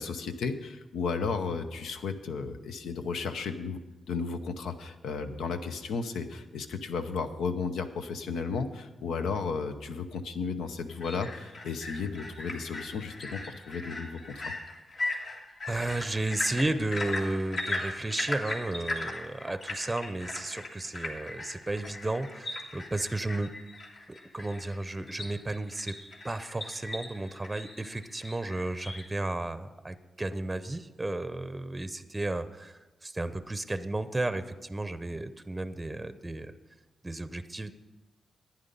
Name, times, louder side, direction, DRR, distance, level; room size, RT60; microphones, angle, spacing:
voice 1, 0.0-3.8 4.1-14.5, left 5 dB, 90° left, 8 dB, 0.7 m, -34 dB
sound 1, 10.9-29.0, left 2 dB, 55° left, 2.1 m, -38 dB
voice 2, 15.0-15.3 15.6-23.5 24.1-26.0 26.2-36.5 37.0-37.7, right 2 dB, 20° right, 12 dB, 0.6 m, -33 dB
11.0 x 9.5 x 5.3 m, 1.2 s
cardioid pair, 65°, 0 cm